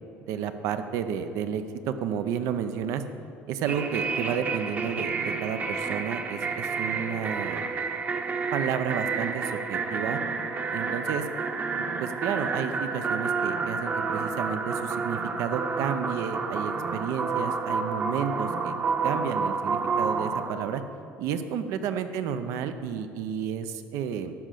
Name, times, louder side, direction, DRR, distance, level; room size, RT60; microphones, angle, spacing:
voice 1, 0.3-3.0 3.5-7.7 8.5-10.2 10.7-11.3 11.8-18.7 19.0-20.8 21.2-24.3, right 8 dB, 75° right, 9 dB, 0.7 m, -31 dB
sound 1, 3.7-20.5, right 4 dB, 35° right, 0.9 m, -30 dB
12.0 x 5.1 x 7.7 m, 2.9 s
cardioid pair, 110°, 5 cm